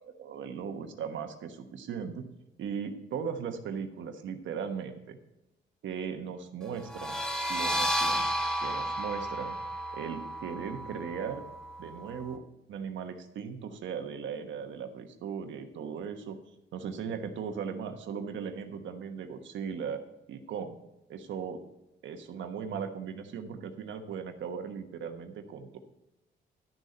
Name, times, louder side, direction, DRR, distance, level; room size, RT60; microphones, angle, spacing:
voice 1, 0.0-2.2 2.6-5.2 5.8-7.2 7.5-8.3 8.6-9.6 9.9-11.4 11.8-12.4 12.7-16.4 16.7-20.0 20.3-20.8 21.1-21.6 22.0-25.8, right 7 dB, 75° right, 6 dB, 1.2 m, -38 dB
sound 1, 6.8-12.3, right 1 dB, 5° left, 1.2 m, -33 dB
11.5 x 6.6 x 4.4 m, 0.92 s
cardioid pair, 90°, 20 cm